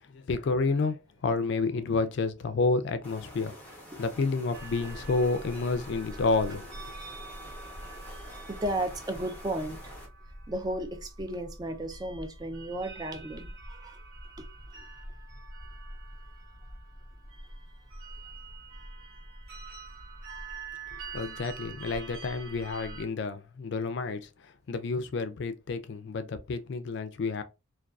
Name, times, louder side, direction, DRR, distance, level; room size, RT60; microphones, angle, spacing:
voice 1, 0.1-3.6 3.9-6.7 20.9-27.4, left 3 dB, 55° left, 0.3 m, -30 dB
sound 1, 3.0-10.1, equal, 10° left, 0.8 m, -47 dB
sound 2, 4.5-23.0, right 2 dB, 70° right, 1.1 m, -45 dB
voice 2, 8.5-10.0 10.5-14.0 14.4-14.5 14.8-14.9, right 1 dB, 20° right, 0.3 m, -34 dB
2.5 x 2.2 x 2.2 m
head